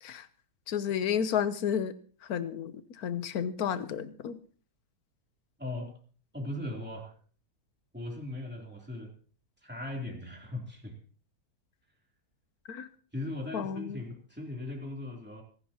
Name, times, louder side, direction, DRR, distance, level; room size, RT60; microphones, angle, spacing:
voice 1, 0.7-1.9 2.3-4.4 12.7-12.9 13.5-14.0, left 8 dB, 70° left, 13 dB, 1.4 m, -31 dB
voice 2, 5.6-5.9 6.3-7.1 7.9-9.1 9.6-11.0 13.1-15.4, left 1 dB, 5° right, 0 dB, 3.2 m, -38 dB
25.0 x 11.5 x 2.9 m, 0.42 s
omnidirectional pair, 1.7 m